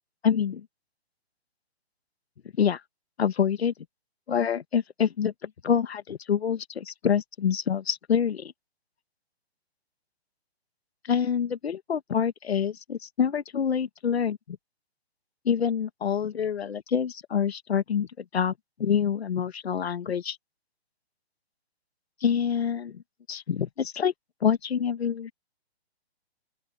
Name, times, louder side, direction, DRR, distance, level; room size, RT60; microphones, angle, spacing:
voice 1, 0.2-0.6 2.6-2.8 3.2-3.7 4.3-8.5 11.0-14.6 15.4-18.5 18.8-20.4 22.2-23.0 23.3-24.1 24.4-25.3, left 7 dB, 70° left, 1.8 m, -26 dB
open air
hypercardioid pair, 170°, 32 cm